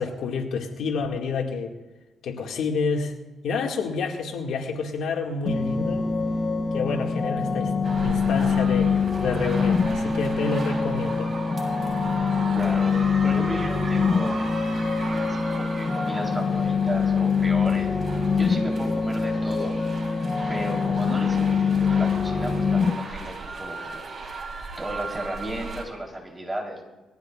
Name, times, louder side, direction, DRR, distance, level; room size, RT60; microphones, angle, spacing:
voice 1, 0.0-1.7 2.2-3.1 3.4-6.1 6.7-7.7 8.0-11.3, left 4 dB, 75° left, 1 dB, 2.1 m, -28 dB
sound 1, 5.5-22.9, left 5 dB, 35° left, 1.1 m, -24 dB
sound 2, 7.8-25.8, right 3 dB, 45° right, 3.5 m, -37 dB
voice 2, 12.5-14.6 15.1-18.0 18.4-19.8 20.5-24.0 24.8-26.8, right 1 dB, 15° right, 0 dB, 3.8 m, -34 dB
20.5 x 14.5 x 2.5 m, 1.1 s
cardioid pair, 90°, 0 cm